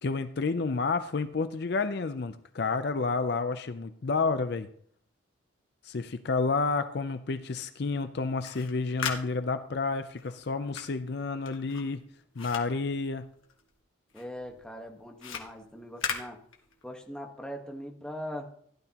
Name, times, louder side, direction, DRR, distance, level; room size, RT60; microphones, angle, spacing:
voice 1, 0.0-4.7 5.8-12.0 12.4-13.3, left 4 dB, 55° left, 10 dB, 0.5 m, -30 dB
sound 1, 8.2-13.8 14.1-17.0, left 6 dB, 85° left, 1.6 m, -39 dB
voice 2, 14.1-16.4 16.8-18.5, equal, 5° left, 1 dB, 1.3 m, -41 dB
16.0 x 11.0 x 2.9 m, 0.62 s
head